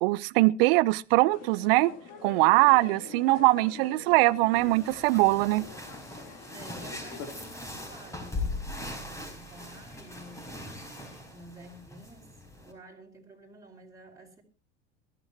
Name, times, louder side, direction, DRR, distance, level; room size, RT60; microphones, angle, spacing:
voice 1, 0.0-1.9 2.2-5.7, right 21 dB, 60° right, 0.8 m, -22 dB
sound 1, 1.3-7.5, left 5 dB, 50° left, 3.5 m, -46 dB
sound 2, 2.6-11.2, left 1 dB, 85° left, 4.4 m, -56 dB
sound 3, 4.5-12.7, left 2 dB, 10° left, 4.8 m, -40 dB
voice 2, 6.5-10.6 11.3-14.4, right 1 dB, 10° right, 4.9 m, -51 dB
22.0 x 14.0 x 2.9 m
hypercardioid pair, 80°, 34 cm